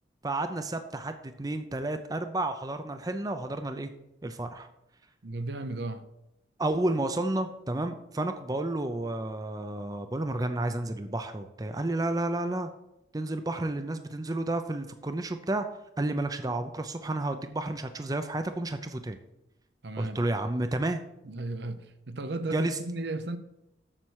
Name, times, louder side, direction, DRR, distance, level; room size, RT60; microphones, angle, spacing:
voice 1, 0.2-3.9 4.2-4.7 6.6-12.7 13.1-15.7 16.0-19.2 20.0-21.0 22.5-22.8, right 2 dB, 20° right, 0.5 m, -31 dB
voice 2, 5.2-6.1 19.8-20.2 21.2-23.4, right 2 dB, 65° right, 0.7 m, -35 dB
7.5 x 6.9 x 6.3 m
head